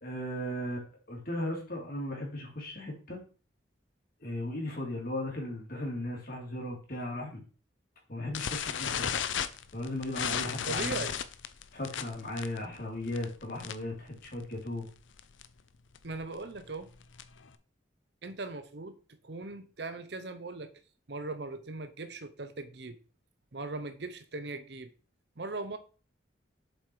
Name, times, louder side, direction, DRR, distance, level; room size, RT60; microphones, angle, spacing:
voice 1, 0.0-3.2 4.2-7.4 8.1-9.2 9.7-11.0 11.7-14.9, left 1 dB, 50° left, 2.8 m, -36 dB
sound 1, 8.3-14.0 14.2-14.5 14.8-14.9 15.2-15.4 15.9-17.5, left 8 dB, 85° left, 0.6 m, -34 dB
voice 2, 10.7-11.2 16.0-16.9 18.2-19.0 19.2-20.7 21.1-23.0 23.5-24.9 25.4-25.8, right 3 dB, 60° right, 0.9 m, -39 dB
7.4 x 4.8 x 4.7 m
head